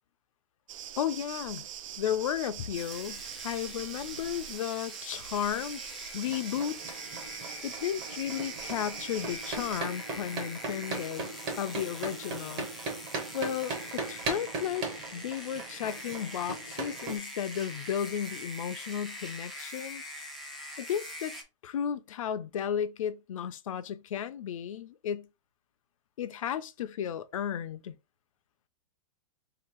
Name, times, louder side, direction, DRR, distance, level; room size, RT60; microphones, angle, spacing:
sound 1, 0.7-9.8, right 10 dB, 80° right, 0.5 m, -43 dB
voice 1, 1.0-1.7 2.0-5.8 6.1-6.8 7.6-11.3 11.6-12.7 13.3-20.0 20.8-21.4 21.6-25.3 26.2-28.0, left 9 dB, 80° left, 0.6 m, -34 dB
sound 2, 2.7-21.4, left 1 dB, ahead, 0.3 m, -44 dB
sound 3, 6.2-17.2, right 3 dB, 25° right, 0.8 m, -39 dB
3.3 x 2.9 x 4.6 m
supercardioid pair, 180°, 17 cm